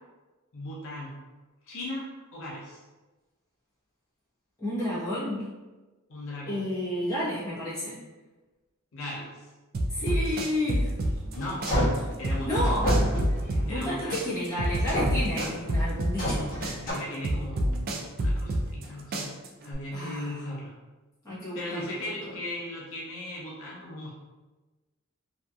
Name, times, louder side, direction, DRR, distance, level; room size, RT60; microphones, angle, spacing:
voice 1, 0.5-1.2 1.6-2.1 2.3-2.8 6.1-6.7 8.9-9.4 10.0-10.4 11.2-11.7 12.2-12.7 13.7-14.2 16.8-19.3 19.6-20.8 21.5-24.1, left 1 dB, 65° left, -5 dB, 0.6 m, -37 dB
voice 2, 4.6-5.5 6.4-8.0 9.9-10.9 12.5-12.9 13.7-16.5 19.9-20.4 21.2-22.1, left 1 dB, 15° left, -10 dB, 0.9 m, -31 dB
sound 1, 9.7-11.4 11.6-13.9 14.1-16.4 16.6-18.9 19.1-19.7, right 1 dB, 45° right, 0.3 m, -27 dB
sound 2, 11.0-12.1 12.6-13.9 14.6-15.6 16.2-16.9, equal, 40° left, 1.3 m, -28 dB
2.7 x 2.4 x 2.2 m, 1.2 s
head